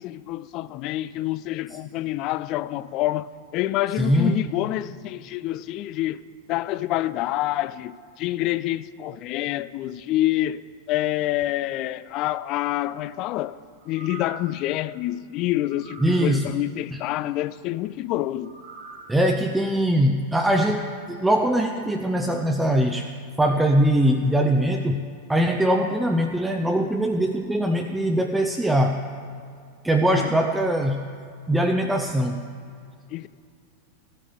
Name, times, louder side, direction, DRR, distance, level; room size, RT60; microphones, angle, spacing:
voice 1, 0.0-6.2 6.5-10.6 10.9-13.6 13.9-18.5 30.1-30.4 33.1-33.3, left 15 dB, 40° left, 0.3 m, -27 dB
voice 2, 4.0-4.4 16.0-16.5 16.9-17.0 19.1-23.1 23.4-29.0 29.8-31.1 31.5-32.5, right 1 dB, 5° right, 0.6 m, -22 dB
sound 1, 13.8-14.6 15.6-16.3 18.4-19.1 19.5-19.6, right 5 dB, 55° right, 1.7 m, -43 dB
14.0 x 7.5 x 4.9 m
figure-of-eight pair, 90°, 0 cm